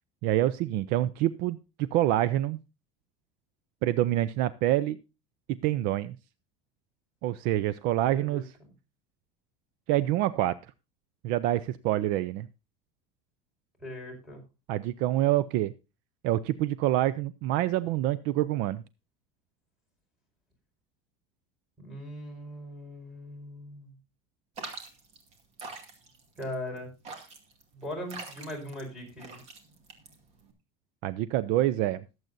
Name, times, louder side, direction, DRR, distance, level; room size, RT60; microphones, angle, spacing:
voice 1, 0.2-2.6 3.8-5.0 5.5-6.2 7.2-8.5 9.9-10.6 11.2-12.5 14.7-15.7 16.2-18.8 31.0-32.0, right 14 dB, 55° right, 17 dB, 0.5 m, -26 dB
voice 2, 8.1-8.4 13.8-14.4 21.8-23.9 26.4-26.9 27.7-29.4, left 1 dB, 5° right, 2 dB, 5.1 m, -40 dB
sound 1, 24.6-30.5, right 3 dB, 40° right, 2.3 m, -44 dB
21.0 x 7.9 x 2.6 m, 0.27 s
cardioid pair, 155°, 17 cm